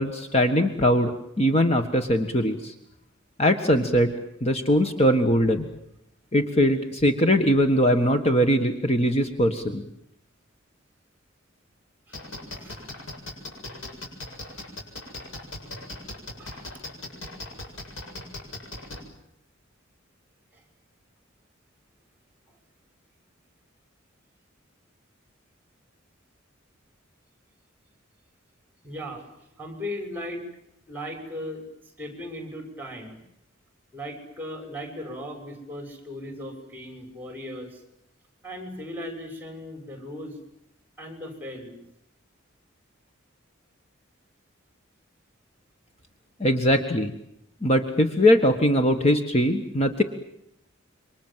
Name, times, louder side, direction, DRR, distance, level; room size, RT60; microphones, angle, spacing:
voice 1, 0.0-2.7 3.4-4.1 4.4-5.6 6.3-9.8 46.4-47.1 47.6-50.0, equal, 30° left, 6 dB, 1.6 m, -21 dB
sound 1, 12.1-19.0, left 2 dB, 85° left, 7.5 m, -37 dB
voice 2, 12.5-12.8 14.5-14.6 15.7-15.9 16.4-16.8 20.5-20.6 28.8-30.5 30.9-31.6 32.0-33.2 33.9-37.8 38.4-40.4 41.0-41.8, left 1 dB, 10° right, 5 dB, 6.6 m, -37 dB
28.0 x 24.5 x 7.6 m, 0.77 s
head